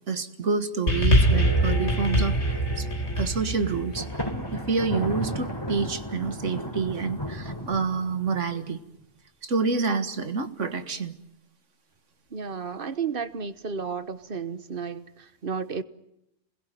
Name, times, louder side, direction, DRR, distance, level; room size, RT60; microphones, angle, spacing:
voice 1, 0.1-2.9 3.2-4.1 4.5-8.8 9.4-11.2, right 4 dB, 75° right, 2.1 m, -28 dB
sound 1, 0.9-5.4 6.2-6.3, equal, 65° left, 3.7 m, -24 dB
Thunder, 4.0-8.5, equal, 20° left, 3.9 m, -34 dB
voice 2, 12.3-15.8, right 5 dB, 50° right, 1.4 m, -32 dB
27.5 x 21.5 x 9.3 m
omnidirectional pair, 1.3 m